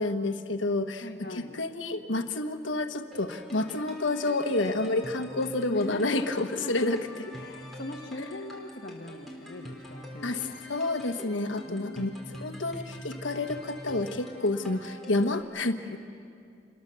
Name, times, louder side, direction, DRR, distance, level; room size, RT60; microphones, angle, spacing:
voice 1, 0.0-7.3 10.2-10.4 10.7-16.0, left 2 dB, 90° left, 8 dB, 1.3 m, -29 dB
voice 2, 1.0-1.6 5.7-6.7 7.3-10.6 11.7-12.6 15.9-16.0, left 2 dB, 55° left, 3 dB, 1.5 m, -41 dB
sound 1, 3.1-15.4, equal, ahead, 3.8 m, -44 dB
28.5 x 22.0 x 7.0 m, 2.4 s
head